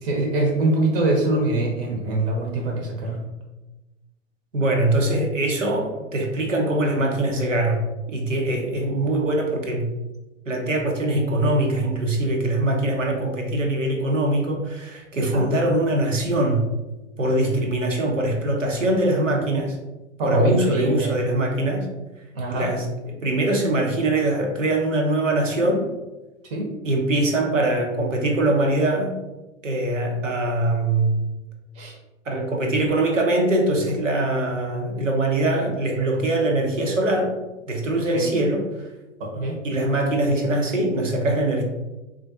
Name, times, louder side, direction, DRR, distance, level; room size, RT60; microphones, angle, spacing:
voice 1, 0.0-3.3 15.3-15.5 20.2-21.2 22.3-22.7 26.4-26.7 31.7-32.0 38.1-38.3 39.2-39.6, right 2 dB, 50° right, 0 dB, 0.8 m, -24 dB
voice 2, 4.5-9.9 10.5-16.7 17.2-19.8 20.2-21.9 22.5-25.9 26.8-29.2 29.6-31.2 32.3-37.3 37.7-38.9 39.6-41.6, right 1 dB, 85° right, 2 dB, 0.7 m, -22 dB
3.7 x 2.4 x 2.5 m, 1.1 s
figure-of-eight pair, 95°, 37 cm